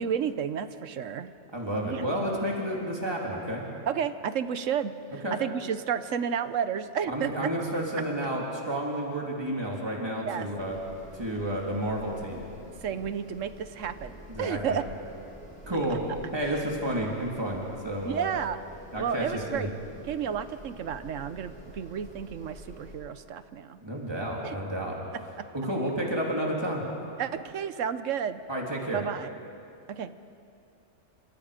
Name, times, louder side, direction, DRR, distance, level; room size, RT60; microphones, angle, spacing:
voice 1, 0.0-1.3 1.8-2.0 3.9-7.5 10.3-10.5 12.8-14.8 18.0-18.6 19.0-19.7 20.0-23.8 24.4-24.5 27.2-28.4 28.9-29.3 29.9-30.1, right 8 dB, 85° right, 12 dB, 1.2 m, -31 dB
voice 2, 1.5-3.6 5.2-5.4 7.1-10.8 11.1-12.4 14.3-14.8 15.7-16.0 16.3-18.3 18.9-19.7 23.8-25.0 25.5-26.8 28.5-29.0, right 1 dB, 20° right, -2 dB, 3.2 m, -31 dB
sound 1, 10.6-22.9, equal, 5° left, 7.5 m, -48 dB
29.0 x 26.5 x 5.1 m, 2.6 s
omnidirectional pair, 1.3 m